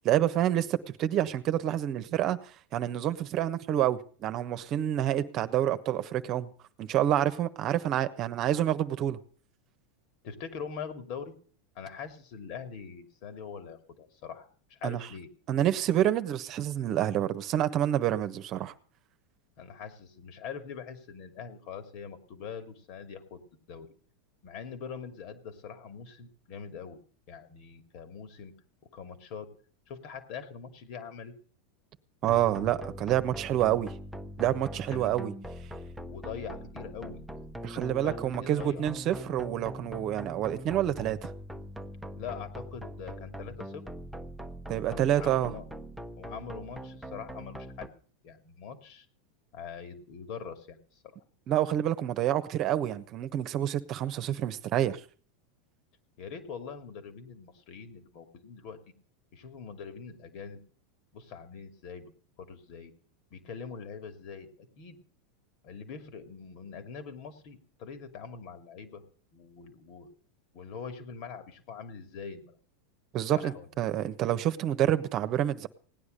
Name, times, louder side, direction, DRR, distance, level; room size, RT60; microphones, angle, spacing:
voice 1, 0.0-2.4 2.7-6.5 6.8-9.2 14.8-15.1 15.5-18.7 32.2-33.9 34.4-35.3 37.6-41.3 44.7-45.5 51.5-55.0 73.1-75.7, right 11 dB, 45° right, 1.1 m, -28 dB
voice 2, 10.2-11.3 11.7-15.3 19.6-23.4 23.7-23.9 24.4-27.0 27.3-28.5 28.9-29.5 29.9-31.4 34.9-35.1 36.0-37.2 37.6-38.8 42.2-43.8 44.7-45.7 46.2-47.9 48.2-49.1 49.5-51.2 56.2-58.8 59.3-60.6 61.1-62.1 62.4-62.9 63.3-65.0 65.6-69.0 69.3-70.1 70.5-72.6 73.4-73.7, left 6 dB, 55° left, 2.8 m, -43 dB
sound 1, 32.3-47.9, equal, ahead, 1.1 m, -42 dB
17.5 x 9.8 x 6.7 m
hypercardioid pair, 100°, 0 cm